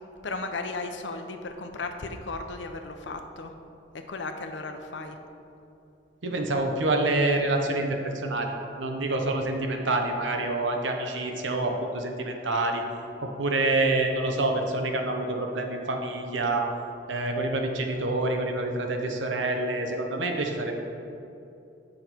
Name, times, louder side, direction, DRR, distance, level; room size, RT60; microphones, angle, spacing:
voice 1, 0.2-3.5 3.9-5.2, left 3 dB, 70° left, 6 dB, 0.7 m, -35 dB
voice 2, 6.2-12.8 13.2-16.7 17.1-20.8, right 2 dB, 90° right, 3 dB, 1.0 m, -27 dB
8.5 x 6.4 x 4.5 m, 2.8 s
head